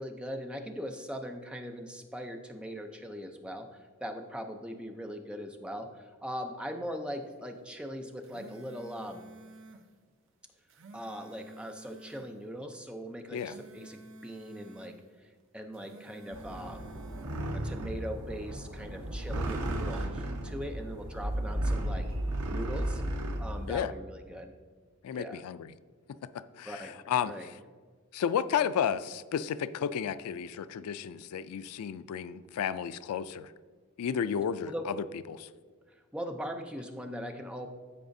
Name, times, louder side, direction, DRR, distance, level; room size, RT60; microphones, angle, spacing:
voice 1, 0.0-9.3 10.9-14.9 15.5-16.9 17.5-22.1 22.5-23.0 23.4-24.5 25.1-25.4 26.7-26.9 27.2-27.5 34.7-34.9 36.1-37.7, equal, 5° right, 4 dB, 0.5 m, -40 dB
sound 1, 8.0-9.9 10.5-12.3 13.2-15.0 15.6-17.4, right 2 dB, 55° right, 0.7 m, -51 dB
sound 2, 16.3-23.9, right 1 dB, 80° right, 0.9 m, -34 dB
voice 2, 25.0-25.7 26.6-27.5 28.1-33.5 34.0-34.9 35.3-35.5, left 8 dB, 85° left, 14 dB, 0.3 m, -32 dB
13.5 x 4.8 x 2.6 m, 1.5 s
head